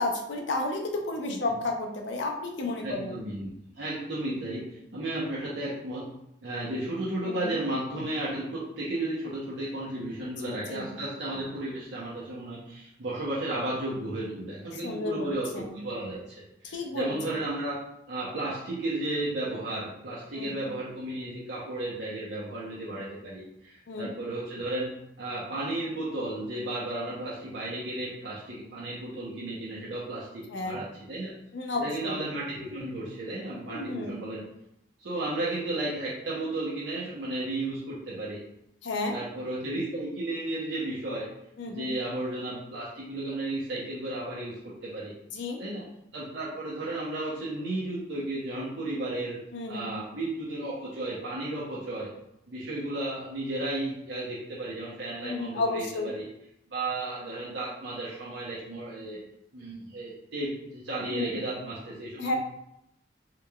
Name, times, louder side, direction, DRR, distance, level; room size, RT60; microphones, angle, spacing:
voice 1, 0.0-3.2 7.3-7.6 10.4-11.0 14.7-15.8 16.6-17.1 20.3-20.6 23.9-24.1 30.5-30.8 31.5-32.2 33.7-34.2 38.8-39.2 41.6-41.9 45.3-45.6 49.5-49.9 55.2-56.1 61.1-61.4 62.2-62.3, left 2 dB, 80° left, 2 dB, 0.6 m, -32 dB
voice 2, 2.8-4.6 4.9-6.0 6.4-16.3 16.6-24.9 25.2-31.3 31.7-34.4 35.0-38.4 39.1-41.3 41.7-45.1 45.6-45.8 46.1-49.4 49.7-52.1 52.5-56.3 56.7-59.2 59.5-62.3, right 2 dB, 85° right, -7 dB, 0.8 m, -34 dB
3.8 x 3.2 x 2.3 m, 0.78 s
head